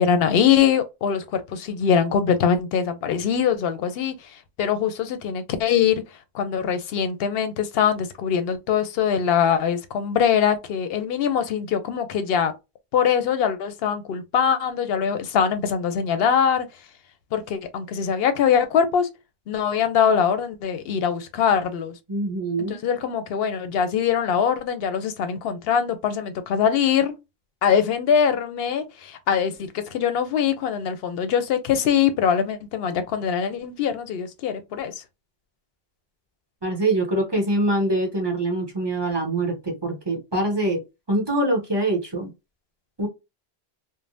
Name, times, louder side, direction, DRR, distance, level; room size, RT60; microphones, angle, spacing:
voice 1, 0.0-4.1 4.6-6.0 6.3-12.5 12.9-16.7 17.3-19.1 19.5-21.9 22.7-27.1 27.6-35.0, left 7 dB, 70° left, 0.7 m, -22 dB
voice 2, 22.1-22.8 36.6-40.8 41.1-42.3 43.0-43.1, right 1 dB, 25° right, 0.8 m, -24 dB
3.3 x 2.0 x 2.5 m
omnidirectional pair, 1.1 m